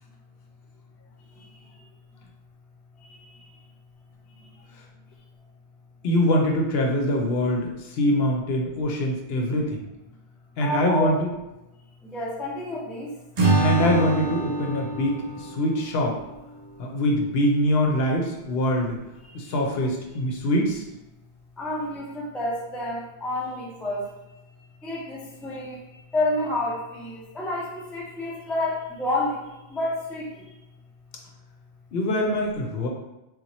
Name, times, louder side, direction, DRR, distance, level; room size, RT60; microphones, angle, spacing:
voice 1, 6.0-9.8 10.6-11.3 13.6-16.2 16.8-19.0 19.3-20.8 31.9-32.9, left 1 dB, 65° left, 0 dB, 0.8 m, -24 dB
voice 2, 10.6-11.2 12.0-13.1 21.6-24.1 24.8-25.8 26.1-29.4 29.7-30.3, left 1 dB, ahead, -4 dB, 0.3 m, -29 dB
Acoustic guitar / Strum, 13.4-16.6, right 2 dB, 45° right, 0.7 m, -26 dB
2.8 x 2.2 x 4.0 m, 0.99 s
omnidirectional pair, 1.1 m